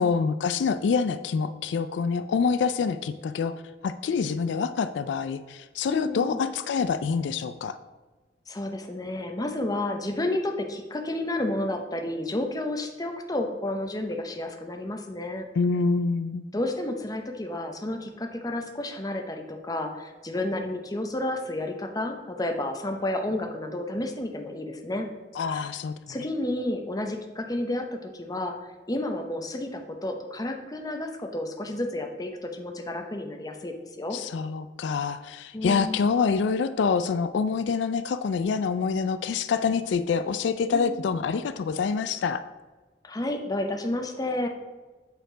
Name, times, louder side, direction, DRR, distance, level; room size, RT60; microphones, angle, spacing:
voice 1, 0.0-3.6 3.8-7.8 15.6-16.4 25.4-25.9 34.1-42.4, left 5 dB, 80° left, 12 dB, 0.3 m, -26 dB
voice 2, 5.9-6.4 8.5-15.5 16.5-25.1 25.5-25.7 26.1-28.6 28.9-34.2 35.5-36.0 40.7-41.1 43.0-44.5, left 1 dB, 20° left, 4 dB, 0.7 m, -31 dB
8.0 x 4.4 x 5.0 m, 1.2 s
head